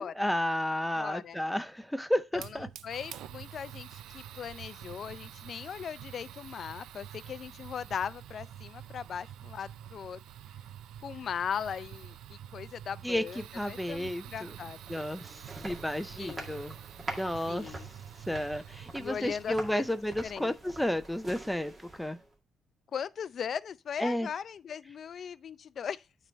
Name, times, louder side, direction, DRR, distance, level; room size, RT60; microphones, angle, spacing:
voice 1, 0.0-2.7 13.0-13.2 13.5-14.5 14.9-16.7 17.2-17.8 18.3-22.2 24.0-24.3, left 1 dB, 5° left, 0.5 m, -32 dB
voice 2, 1.0-1.4 2.3-10.2 11.0-15.0 16.2-16.5 17.5-17.9 18.9-20.5 22.9-26.0, left 7 dB, 55° left, 0.4 m, -39 dB
Fire, 2.3-19.9, right 10 dB, 85° right, 0.4 m, -47 dB
sound 1, 14.5-22.3, right 2 dB, 25° right, 1.9 m, -45 dB
8.9 x 3.3 x 5.1 m
cardioid pair, 90°, 0 cm